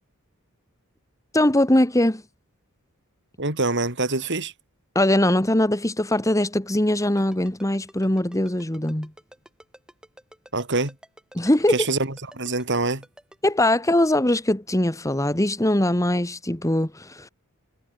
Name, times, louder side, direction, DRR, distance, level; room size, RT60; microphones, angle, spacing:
voice 1, 1.3-2.2 4.9-9.1 11.3-11.8 13.4-17.3, left 1 dB, 15° left, 1.7 m, -21 dB
voice 2, 3.4-4.5 10.5-11.0 11.7-13.0, right 3 dB, 55° right, 5.2 m, -25 dB
Ringtone, 6.9-13.6, equal, 5° right, 7.0 m, -48 dB
head